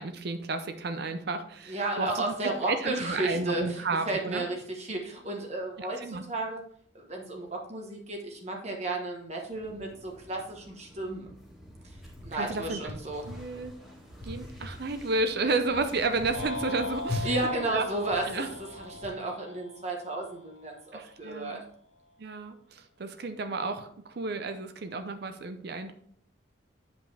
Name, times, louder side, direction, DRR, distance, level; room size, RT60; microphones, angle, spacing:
voice 1, 0.0-4.4 4.9-5.0 5.8-6.2 12.3-13.0 13.3-13.7 14.2-17.9 18.3-18.5 20.9-21.6 22.2-25.9, right 3 dB, 55° right, 8 dB, 0.6 m, -32 dB
voice 2, 1.7-6.6 6.9-11.3 12.2-13.2 17.2-18.4 18.7-21.6, right 2 dB, 35° right, 1 dB, 1.2 m, -33 dB
sound 1, 9.5-19.1, left 2 dB, ahead, 2.0 m, -43 dB
sound 2, 16.3-20.6, left 2 dB, 85° left, 1.4 m, -39 dB
8.8 x 5.3 x 3.3 m, 0.63 s
head